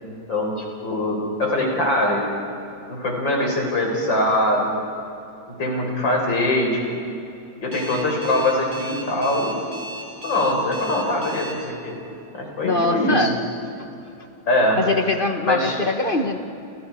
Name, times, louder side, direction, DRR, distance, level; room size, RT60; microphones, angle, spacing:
voice 1, 0.0-2.3 2.9-4.8 5.5-6.8 7.6-9.6 10.2-12.0 12.3-13.3 14.5-14.8 15.5-15.8, left 1 dB, 70° left, 0 dB, 5.5 m, -22 dB
Alarm, 7.7-11.5, right 1 dB, 75° right, 4.5 m, -36 dB
voice 2, 12.6-13.3 14.8-16.4, left 2 dB, 30° left, 5 dB, 1.3 m, -22 dB
30.0 x 28.5 x 4.8 m, 2.7 s
omnidirectional pair, 2.1 m